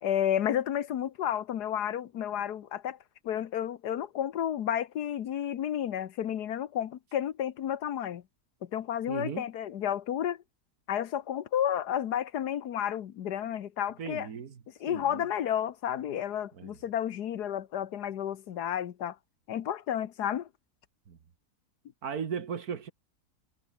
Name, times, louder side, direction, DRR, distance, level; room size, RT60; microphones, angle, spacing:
voice 1, 0.0-3.0 3.2-8.2 8.6-10.4 10.9-14.3 14.8-19.2 19.5-20.5, left 10 dB, 85° left, 1.6 m, -31 dB
voice 2, 9.1-9.5 14.0-14.6 14.9-15.2 16.6-16.8 21.1-21.2 22.0-22.9, right 7 dB, 65° right, 2.0 m, -37 dB
omnidirectional pair, 1.7 m